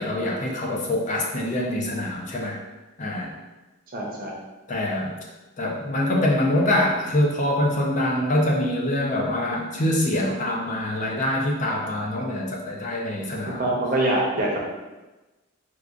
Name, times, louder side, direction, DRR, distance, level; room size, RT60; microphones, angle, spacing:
voice 1, 0.0-2.6 3.0-3.3 4.7-5.1 5.6-13.6, left 1 dB, 35° left, -1 dB, 0.4 m, -24 dB
voice 2, 3.9-4.3 13.6-14.7, right 1 dB, 40° right, -2 dB, 0.7 m, -24 dB
4.6 x 2.3 x 2.5 m, 1.1 s
head